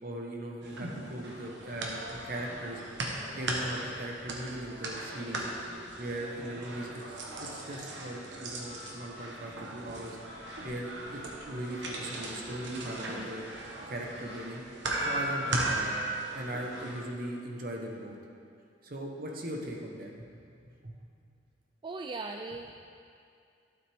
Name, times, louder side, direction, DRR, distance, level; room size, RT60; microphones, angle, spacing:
voice 1, 0.0-2.8 3.3-5.6 6.0-10.2 10.6-13.4 13.9-14.6 15.0-15.8 16.3-18.2 18.8-20.3 20.8-21.0, right 1 dB, 50° right, 0 dB, 1.1 m, -39 dB
sound 1, 0.6-17.0, right 2 dB, 70° right, 1.2 m, -37 dB
voice 2, 21.8-22.8, right 3 dB, 25° right, 3 dB, 0.3 m, -38 dB
12.0 x 8.0 x 3.5 m, 2.4 s
head